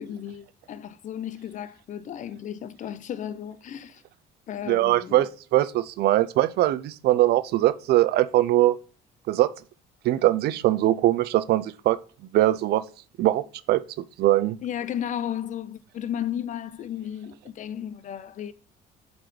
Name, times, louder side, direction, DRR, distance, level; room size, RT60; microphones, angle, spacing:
voice 1, 0.0-4.0 4.5-5.2 14.6-18.5, left 10 dB, 50° left, 0.5 m, -34 dB
voice 2, 4.7-8.8 9.3-9.5 10.0-12.0 12.3-12.8 13.2-13.8 14.2-14.6, right 15 dB, 70° right, 0.5 m, -21 dB
7.7 x 4.0 x 3.2 m
cardioid pair, 110°, 17 cm